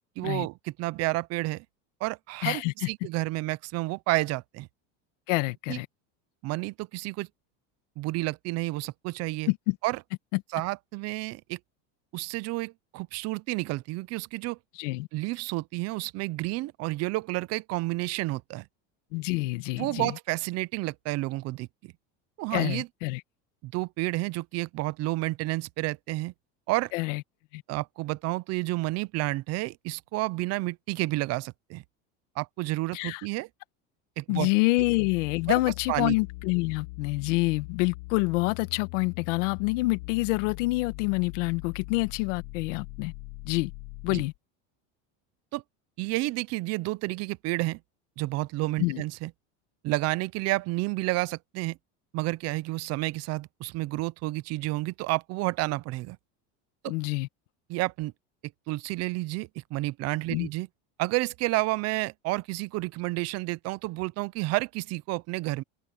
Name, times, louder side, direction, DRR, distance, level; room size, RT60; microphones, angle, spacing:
voice 1, 0.2-1.6 2.0-4.7 5.7-5.8 6.4-7.3 8.0-9.5 9.8-10.0 10.5-11.6 12.1-14.6 15.1-18.7 19.8-21.7 22.4-22.9 23.6-26.3 26.7-26.9 27.7-31.8 32.4-33.5 34.2-34.5 35.5-36.2 44.1-44.2 45.5-45.6 46.0-47.8 48.2-49.3 49.8-51.8 52.1-56.2 56.8-56.9 57.7-58.1 58.7-60.7 61.0-65.6, right 20 dB, 45° right, 0.6 m, -30 dB
voice 2, 2.4-2.7 5.3-5.9 9.5-9.8 10.3-10.4 14.8-15.1 19.1-20.1 22.5-23.2 26.9-27.2 27.5-27.6 32.9-33.2 34.3-43.1 43.4-43.7 44.0-44.3 48.8-49.0 56.9-57.3 60.3-60.5, left 23 dB, 80° left, 1.4 m, -27 dB
sound 1, 34.8-44.4, left 23 dB, 60° left, 0.9 m, -41 dB
cardioid pair, 150°, 36 cm